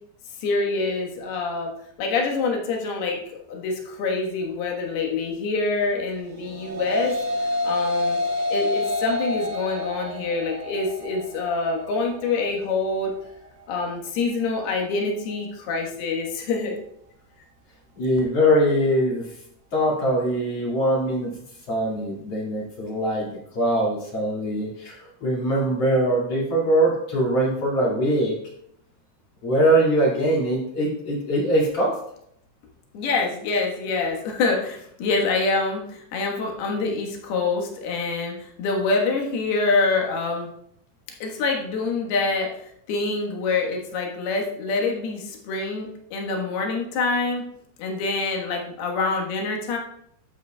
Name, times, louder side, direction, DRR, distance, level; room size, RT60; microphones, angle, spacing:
voice 1, 0.4-1.7 2.0-7.2 7.6-8.2 8.5-13.1 13.7-16.8 32.9-40.5 41.2-42.6 42.9-47.4 47.8-49.8, left 3 dB, 65° left, 0 dB, 3.1 m, -26 dB
sound 1, 6.3-15.5, left 1 dB, 75° right, 3.0 m, -29 dB
voice 2, 18.0-19.3 19.7-21.3 21.7-23.3 23.5-28.3 29.4-31.9, right 1 dB, 45° left, -4 dB, 2.4 m, -22 dB
12.5 x 8.1 x 2.3 m, 0.70 s
omnidirectional pair, 5.3 m